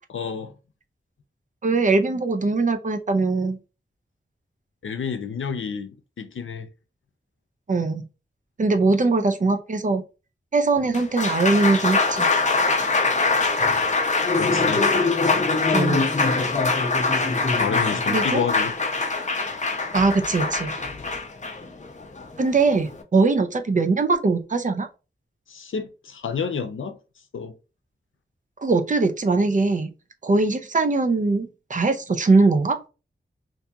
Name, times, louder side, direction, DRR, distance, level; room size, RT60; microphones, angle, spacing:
voice 1, 0.1-0.5 4.8-5.9 6.2-6.7 14.4-14.8 17.6-18.7 25.5-27.0 27.3-27.5, left 6 dB, 90° left, 0.6 m, -29 dB
voice 2, 1.6-3.6 7.7-8.0 8.6-10.0 10.5-12.3 15.7-16.1 18.1-18.4 19.9-20.7 22.4-24.9 28.6-29.9 30.2-32.8, right 3 dB, 40° right, 0.5 m, -21 dB
Applause, 10.8-23.0, left 3 dB, 40° left, 0.7 m, -23 dB
2.8 x 2.7 x 3.5 m
wide cardioid pair, 85°, 20 cm